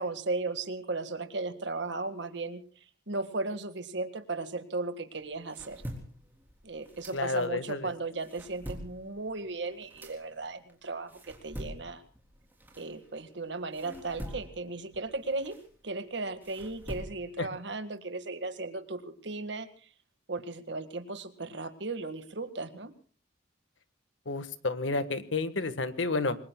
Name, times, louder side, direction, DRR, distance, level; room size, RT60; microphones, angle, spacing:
voice 1, 0.0-5.8 6.6-12.0 12.8-15.6 15.8-19.9 20.3-22.9, right 3 dB, 65° right, 10 dB, 1.8 m, -36 dB
sound 1, 5.1-7.7 8.0-13.3 13.7-17.5, equal, 10° right, 3.5 m, -45 dB
voice 2, 7.1-7.9 17.4-17.5 24.2-26.4, left 3 dB, 85° left, 11 dB, 1.5 m, -30 dB
28.5 x 22.0 x 2.3 m, 0.40 s
head